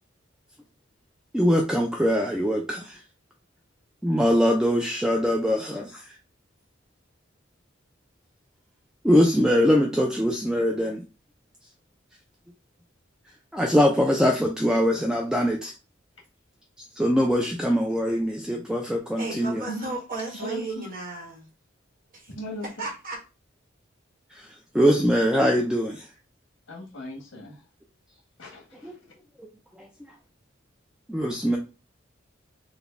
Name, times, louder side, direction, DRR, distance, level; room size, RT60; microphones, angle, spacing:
voice 1, 1.3-3.0 4.0-6.1 9.0-11.0 13.5-15.7 17.0-19.6 24.3-26.1 28.8-28.9 29.4-29.5 29.7-29.9 31.1-31.6, equal, 5° right, 0.4 m, -22 dB
voice 2, 19.2-21.4 22.1-22.3 22.8-23.2, right 3 dB, 45° right, 1.2 m, -34 dB
voice 3, 20.3-20.9 22.3-22.7 26.7-27.6 28.4-29.1, left 1 dB, 65° left, 1.5 m, -38 dB
4.0 x 2.2 x 3.4 m
head